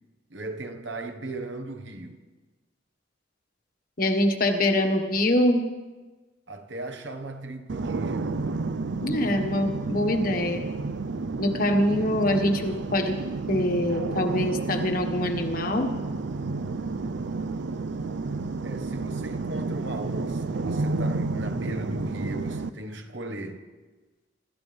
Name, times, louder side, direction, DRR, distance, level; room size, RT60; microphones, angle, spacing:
voice 1, 0.3-2.2 6.5-8.4 18.6-23.6, right 2 dB, 90° right, 1.6 m, -37 dB
voice 2, 4.0-5.6 9.0-10.6 11.4-13.2 13.5-15.9, left 1 dB, 50° left, 1.6 m, -24 dB
sound 1, 7.7-22.7, right 3 dB, 70° right, 0.5 m, -31 dB
26.5 x 14.0 x 3.5 m
head